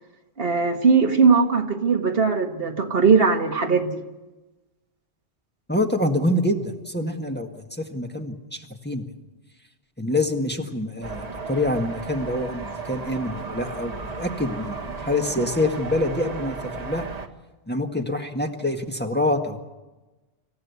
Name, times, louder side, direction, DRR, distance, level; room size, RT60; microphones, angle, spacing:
voice 1, 0.4-4.0, right 5 dB, 65° right, 5 dB, 1.8 m, -19 dB
voice 2, 5.7-9.0 10.0-17.1 17.7-19.6, left 1 dB, 10° left, 3 dB, 1.7 m, -26 dB
sound 1, 11.0-17.3, right 4 dB, 40° right, 1.6 m, -35 dB
26.0 x 15.5 x 8.3 m, 1.1 s
omnidirectional pair, 1.1 m